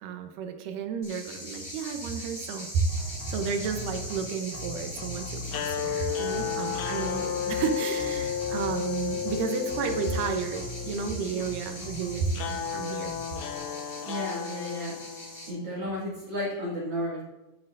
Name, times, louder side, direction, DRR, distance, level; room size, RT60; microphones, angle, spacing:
voice 1, 0.0-2.9 3.3-13.1, right 6 dB, 90° right, 5 dB, 2.5 m, -32 dB
sound 1, 1.0-15.5, left 1 dB, 20° left, 2.2 m, -42 dB
sound 2, 2.9-4.2 4.5-5.9 6.3-7.7 8.0-9.4 9.7-11.1 11.4-12.7 13.0-13.6, left 2 dB, 35° left, 1.7 m, -41 dB
sound 3, 5.5-15.7, left 8 dB, 85° left, 1.6 m, -33 dB
voice 2, 14.1-15.2 15.5-17.2, left 1 dB, 50° right, -7 dB, 2.7 m, -33 dB
11.0 x 7.4 x 2.6 m, 1.1 s
omnidirectional pair, 3.7 m